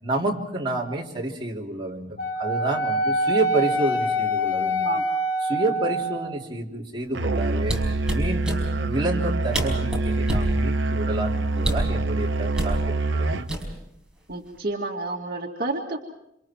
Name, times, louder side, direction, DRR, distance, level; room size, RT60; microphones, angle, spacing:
voice 1, 0.0-4.8 5.4-7.8 8.1-13.3, right 2 dB, 25° right, -2 dB, 3.4 m, -29 dB
Wind instrument woodwind instrument, 2.2-6.3, equal, 65° left, 4.1 m, -25 dB
voice 2, 4.6-5.0 14.3-16.0, right 2 dB, 55° right, 0 dB, 2.2 m, -30 dB
Musical instrument, 7.2-13.5, right 2 dB, 85° right, 0.9 m, -25 dB
sound 1, 7.6-8.6 9.3-9.4 9.5-10.5 11.6-11.9 12.5-12.8 13.5-14.0 14.3-14.6, right 1 dB, 5° right, 5.0 m, -27 dB
27.5 x 27.0 x 4.6 m, 0.79 s
head